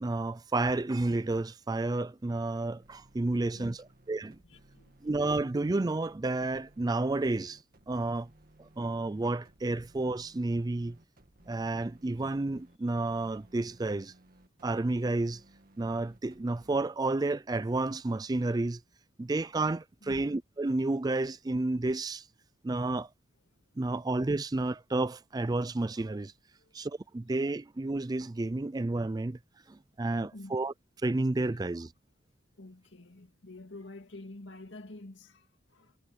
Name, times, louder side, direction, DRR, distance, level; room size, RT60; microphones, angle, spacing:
voice 1, 0.0-3.8 4.1-4.4 5.0-7.6 7.9-8.3 8.6-11.0 11.5-14.1 14.6-15.4 15.8-18.8 19.2-22.3 22.6-23.1 23.8-26.3 26.7-29.4 29.7-30.7 31.0-31.9, right 2 dB, 20° right, 0.4 m, -31 dB
sound 1, 2.8-16.8, right 1 dB, 45° right, 2.1 m, -60 dB
voice 2, 3.3-3.8 4.1-4.2 4.4-5.1 12.2-12.3 20.0-20.3 23.5-23.6 26.6-26.8 30.2-30.6 31.5-31.9 32.5-36.0, left 2 dB, 60° left, 2.4 m, -49 dB
head